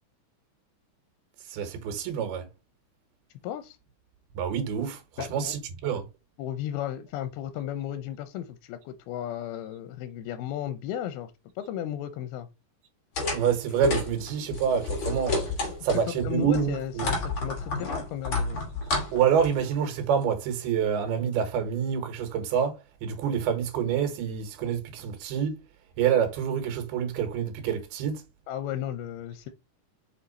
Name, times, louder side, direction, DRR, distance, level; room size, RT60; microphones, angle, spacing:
voice 1, 1.5-2.5 4.3-6.0 13.3-15.4 15.8-17.1 19.1-25.6 26.0-28.2, right 8 dB, 85° right, 3.3 m, -27 dB
voice 2, 3.4-3.8 5.2-5.5 6.4-12.5 15.9-18.6 28.5-29.5, left 11 dB, 85° left, 2.6 m, -35 dB
sound 1, 13.2-16.2 16.5-19.7, left 3 dB, 40° left, 3.1 m, -30 dB
5.8 x 5.7 x 4.0 m
omnidirectional pair, 4.4 m